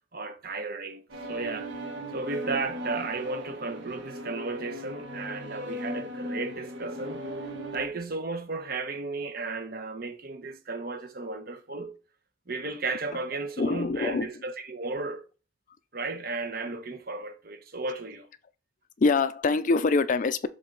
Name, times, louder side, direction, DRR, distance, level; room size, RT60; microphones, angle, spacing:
voice 1, 0.1-1.0 1.3-1.7 2.1-7.2 7.7-12.0 12.5-15.2 15.9-18.2, right 3 dB, 50° right, 1.0 m, -34 dB
sound 1, 1.1-7.9, equal, 70° right, 1.5 m, -37 dB
voice 2, 13.6-14.3 19.0-20.5, left 3 dB, 40° left, 0.4 m, -24 dB
7.2 x 3.9 x 3.8 m
head